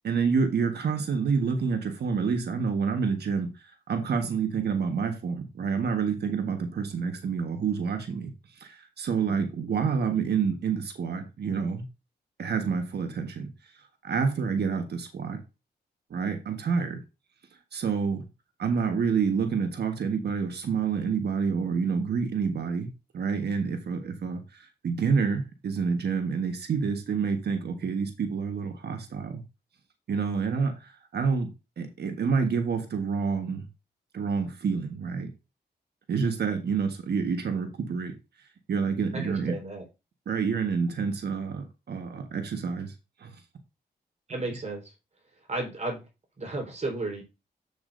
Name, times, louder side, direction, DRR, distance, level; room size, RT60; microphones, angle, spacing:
voice 1, 0.0-3.5 3.9-8.3 8.6-11.8 12.4-13.5 14.0-15.4 16.1-17.0 17.7-18.3 18.6-22.9 23.1-24.4 24.8-29.4 30.1-31.5 31.8-33.6 34.1-35.3 36.1-38.1 38.7-39.5 40.3-42.9 43.2-43.3, right 5 dB, 70° right, 6 dB, 1.4 m, -28 dB
voice 2, 39.1-39.8 44.3-44.8 45.5-46.0 46.4-47.2, right 2 dB, 40° right, 1 dB, 4.3 m, -33 dB
8.4 x 7.1 x 2.6 m, 0.27 s
cardioid pair, 70°, 17 cm